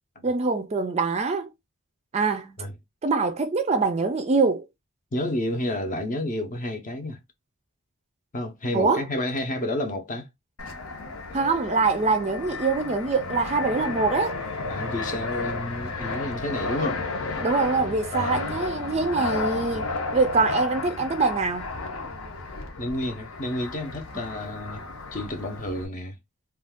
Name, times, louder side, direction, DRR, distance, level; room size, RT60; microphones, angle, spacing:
voice 1, 0.2-1.5 2.1-2.6 3.0-4.7 8.7-9.0 11.3-14.4 17.4-21.7, right 4 dB, 30° right, 0.4 m, -24 dB
voice 2, 5.1-7.2 8.3-10.3 14.7-17.1 18.1-18.6 22.8-24.8 25.1-26.2, left 1 dB, 35° left, 0.6 m, -30 dB
Fixed-wing aircraft airplane, 10.6-25.9, left 3 dB, 70° left, 0.7 m, -33 dB
2.5 x 2.3 x 3.5 m
head